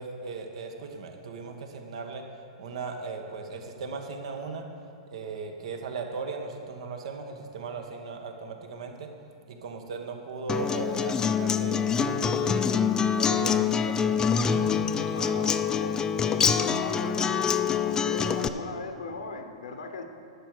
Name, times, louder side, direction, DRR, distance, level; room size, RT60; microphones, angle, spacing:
voice 1, 0.0-2.2 2.6-4.7 5.1-9.1 9.5-12.8 13.1-14.7 15.1-15.4, right 4 dB, 65° right, 4 dB, 1.2 m, -37 dB
Acoustic guitar, 10.5-18.5, left 7 dB, 20° left, 0.4 m, -25 dB
voice 2, 14.9-17.5 17.8-20.0, left 3 dB, 80° left, 6 dB, 0.9 m, -37 dB
11.5 x 6.9 x 4.8 m, 2.4 s
hypercardioid pair, 110°, 4 cm